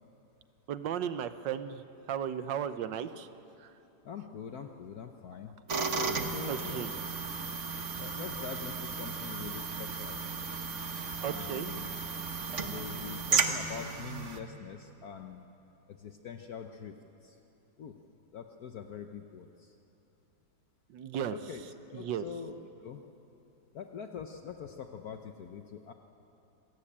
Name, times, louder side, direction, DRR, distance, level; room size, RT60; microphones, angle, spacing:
voice 1, 0.7-1.8 2.1-3.3 6.5-6.9 11.2-11.7 20.9-21.4 21.9-22.2, right 9 dB, 85° right, 12 dB, 1.5 m, -35 dB
voice 2, 4.0-6.9 8.0-10.2 11.3-11.9 12.7-15.5 15.9-17.4 17.8-17.9 18.3-19.7 21.3-23.0 23.7-25.9, left 7 dB, 65° left, 6 dB, 1.3 m, -44 dB
sound 1, 5.7-14.4, right 5 dB, 45° right, 1.4 m, -34 dB
26.0 x 17.0 x 8.7 m, 3.0 s
omnidirectional pair, 1.9 m